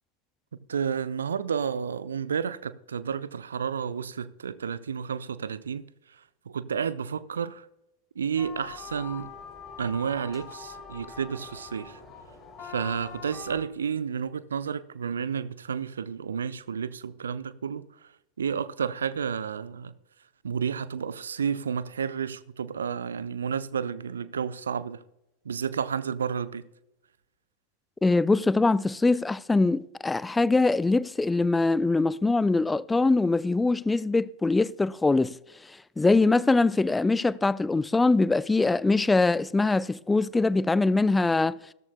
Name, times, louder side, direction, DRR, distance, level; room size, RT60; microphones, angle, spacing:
voice 1, 0.7-5.8 6.1-6.2 6.5-7.7 8.2-9.3 9.8-12.0 12.6-18.1 18.4-19.9 20.4-25.0 25.4-26.6, right 7 dB, 70° right, 0.6 m, -31 dB
sound 1, 8.4-13.6, left 5 dB, 25° left, 2.8 m, -43 dB
voice 2, 28.0-35.4 35.7-41.6, left 3 dB, 10° left, 0.3 m, -23 dB
16.0 x 13.5 x 2.3 m
figure-of-eight pair, 90°, 0 cm